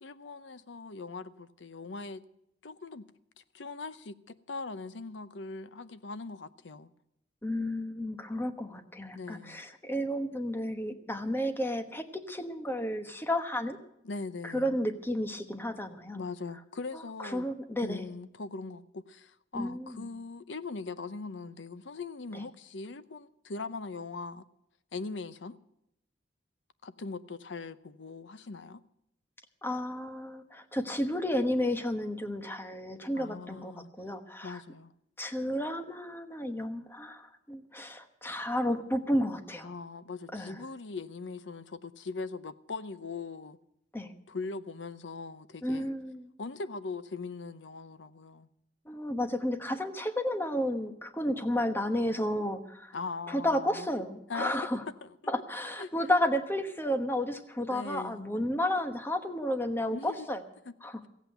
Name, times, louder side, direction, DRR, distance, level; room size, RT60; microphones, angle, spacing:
voice 1, 0.0-2.2 2.6-3.0 3.4-6.9 9.1-9.6 14.0-14.8 16.1-17.4 17.8-24.4 24.9-25.6 26.8-28.8 33.2-33.9 34.4-34.9 39.6-43.6 44.3-45.9 46.4-48.5 52.9-53.9 54.3-54.6 55.0-55.1 55.8-55.9 57.7-58.3 59.9-60.3, left 3 dB, 85° left, 0.7 m, -40 dB
voice 2, 7.4-13.8 14.4-16.2 17.2-18.1 19.5-20.1 22.3-22.4 29.6-34.6 35.2-39.7 40.3-40.5 43.9-44.1 45.6-46.3 48.9-52.9 53.3-54.8 55.3-60.4 60.8-61.0, left 1 dB, 15° left, 1.1 m, -32 dB
15.5 x 8.3 x 9.0 m
head